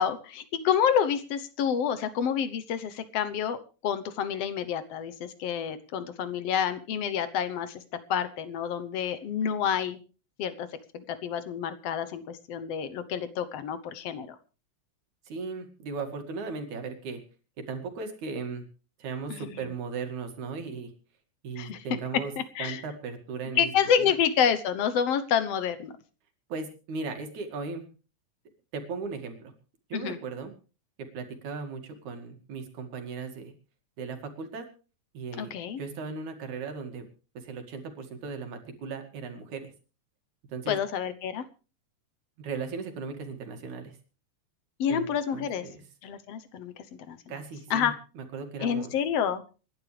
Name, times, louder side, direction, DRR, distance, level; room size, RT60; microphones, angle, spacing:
voice 1, 0.0-3.6 3.8-7.8 8.1-10.0 10.4-10.7 10.9-14.3 19.3-19.6 21.6-21.8 22.4-22.8 23.6-25.9 29.9-30.2 35.4-35.8 40.7-41.5 44.8-45.7 46.0-47.2 47.7-47.9 48.6-49.4, left 8 dB, 65° left, 12 dB, 1.8 m, -28 dB
voice 2, 15.3-17.2 17.7-18.6 19.0-20.9 21.4-24.1 26.5-27.8 28.7-29.5 29.9-30.5 31.1-33.5 34.0-34.7 35.1-37.1 37.4-39.7 40.5-40.8 42.4-44.0 44.9-45.9 47.3-48.9, right 4 dB, 75° right, 5 dB, 3.5 m, -37 dB
26.5 x 11.5 x 3.3 m, 0.35 s
omnidirectional pair, 3.5 m